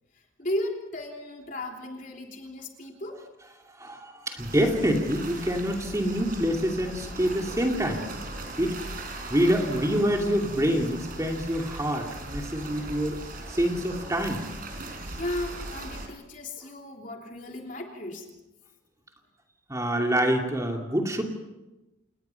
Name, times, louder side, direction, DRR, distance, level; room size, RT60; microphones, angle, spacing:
voice 1, 0.4-3.2 15.2-18.3, left 1 dB, 45° left, 1 dB, 3.3 m, -35 dB
voice 2, 3.8-8.1 8.6-8.8 9.3-13.2 13.5-14.4 19.7-21.2, equal, 15° right, 1 dB, 2.6 m, -26 dB
sound 1, 4.4-16.1, right 2 dB, 50° right, 5.0 m, -39 dB
28.5 x 20.0 x 5.9 m, 1.0 s
head